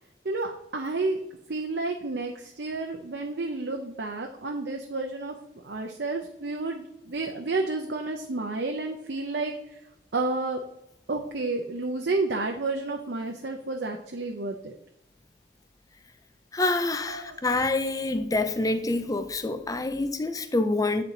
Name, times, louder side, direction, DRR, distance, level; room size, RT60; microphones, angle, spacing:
voice 1, 0.2-1.2 1.5-5.3 5.6-9.5 10.1-10.6 11.1-14.8 17.1-17.4, right 3 dB, 65° right, 0.8 m, -30 dB
voice 2, 16.5-21.0, left 2 dB, 20° left, 0.5 m, -26 dB
8.8 x 4.4 x 3.9 m
head